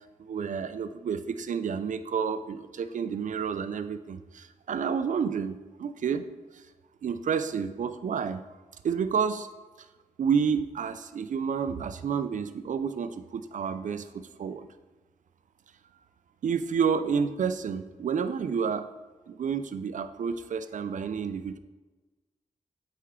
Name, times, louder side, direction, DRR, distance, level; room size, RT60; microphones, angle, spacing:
voice 1, 0.2-6.2 7.0-8.4 8.8-9.5 10.2-14.7 16.4-18.9 19.3-21.6, right 6 dB, 70° right, 11 dB, 0.4 m, -30 dB
8.3 x 4.4 x 3.7 m, 1.2 s
cardioid pair, 75°, 14 cm